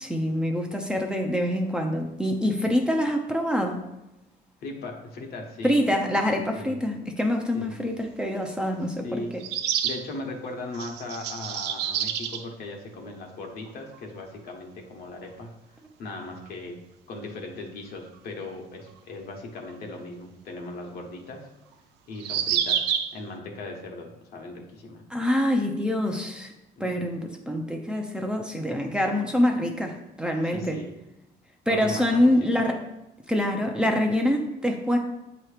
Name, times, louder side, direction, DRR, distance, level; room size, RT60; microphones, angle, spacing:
voice 1, 0.0-3.8 5.6-9.4 25.1-26.5 26.8-30.8 31.7-32.8 33.3-35.0, left 1 dB, 5° right, 2 dB, 0.6 m, -25 dB
voice 2, 4.6-5.8 6.5-6.8 7.5-7.7 9.0-9.4 9.8-15.5 16.0-16.8 17.1-21.5 22.1-25.0 26.8-27.1 30.4-31.0 31.7-32.3, left 2 dB, 65° left, 2 dB, 1.2 m, -38 dB
sound 1, 7.9-8.0 9.4-10.0 10.7-12.4 13.7-13.8 13.9-14.0 16.5-16.6 19.7-19.8 22.2-23.2, right 9 dB, 85° right, 0.5 m, -28 dB
7.7 x 3.0 x 4.9 m, 0.93 s
cardioid pair, 110°, 17 cm